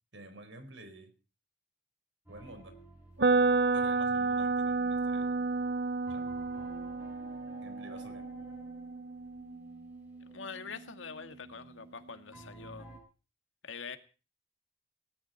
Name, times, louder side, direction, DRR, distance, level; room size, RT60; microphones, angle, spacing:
voice 1, 0.1-1.1 2.3-2.8 3.7-5.3 6.1-6.3 7.6-8.3, right 2 dB, 80° right, 8 dB, 4.8 m, -50 dB
sound 1, 2.3-13.0, right 1 dB, 10° right, 7.6 m, -55 dB
sound 2, 3.2-11.1, right 4 dB, 60° right, 0.9 m, -31 dB
voice 2, 10.3-12.9 13.6-14.0, left 5 dB, 90° left, 8 dB, 2.0 m, -44 dB
18.0 x 17.0 x 4.5 m, 0.35 s
head